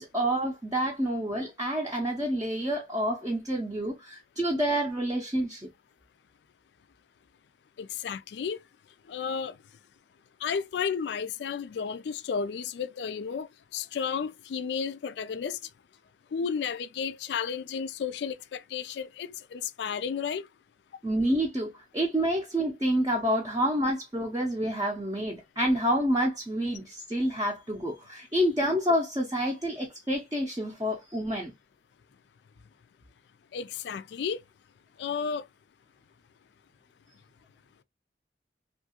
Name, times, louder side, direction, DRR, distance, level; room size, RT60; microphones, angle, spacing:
voice 1, 0.0-5.7 21.0-31.5, equal, 20° right, 0.5 m, -28 dB
voice 2, 7.8-8.6 9.1-9.5 10.4-15.6 16.3-20.4 33.5-34.4 35.0-35.5, left 6 dB, 70° left, 0.3 m, -33 dB
2.7 x 2.4 x 2.8 m
head